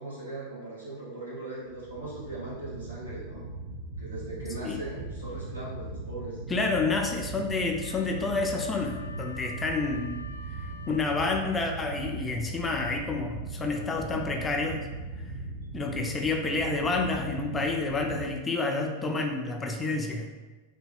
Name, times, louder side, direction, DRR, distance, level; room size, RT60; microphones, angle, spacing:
voice 1, 0.0-3.4 4.0-6.4 6.7-6.8 15.8-15.9, right 2 dB, 80° right, -8 dB, 1.2 m, -39 dB
sound 1, 1.7-18.2, right 2 dB, 50° right, 0.6 m, -39 dB
voice 2, 6.5-10.2 10.9-14.9 15.2-15.3 15.7-20.3, left 3 dB, 15° left, 2 dB, 0.3 m, -29 dB
Wind instrument woodwind instrument, 7.8-11.8, left 3 dB, 85° left, 0.4 m, -47 dB
3.2 x 2.1 x 3.4 m, 1.2 s
figure-of-eight pair, 90°, 0 cm